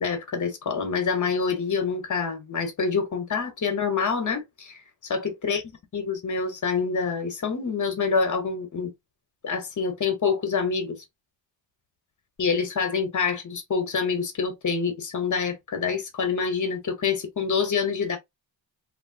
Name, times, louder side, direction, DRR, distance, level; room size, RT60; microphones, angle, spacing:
voice 1, 0.0-4.8 5.1-5.6 5.9-8.9 9.4-11.0 12.4-18.2, left 5 dB, 40° left, 1.0 m, -26 dB
3.0 x 2.5 x 2.7 m
wide cardioid pair, 155°, 46 cm